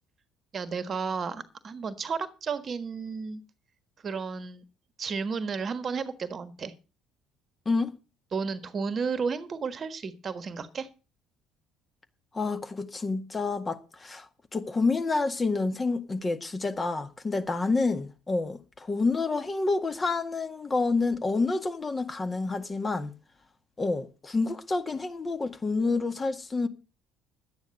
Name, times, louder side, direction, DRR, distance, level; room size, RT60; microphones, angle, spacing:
voice 1, 0.5-3.4 4.0-4.6 5.0-6.7 8.3-10.9, right 5 dB, 40° right, 1.4 m, -32 dB
voice 2, 7.7-8.0 12.3-23.1 23.8-26.7, left 3 dB, 25° left, 1.8 m, -28 dB
12.0 x 9.5 x 6.6 m
figure-of-eight pair, 55°, 0 cm